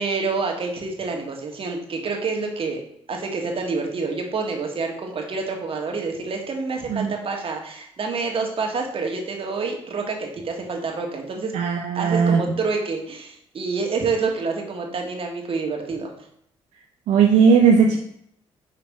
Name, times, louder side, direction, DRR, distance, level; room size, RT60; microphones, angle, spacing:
voice 1, 0.0-2.8 3.1-11.5 11.9-16.1, right 4 dB, 50° right, 2 dB, 1.6 m, -27 dB
voice 2, 11.5-12.4 17.1-18.0, right 6 dB, 75° right, 1 dB, 0.6 m, -17 dB
5.6 x 3.8 x 4.7 m, 0.69 s
supercardioid pair, 55°, 12 cm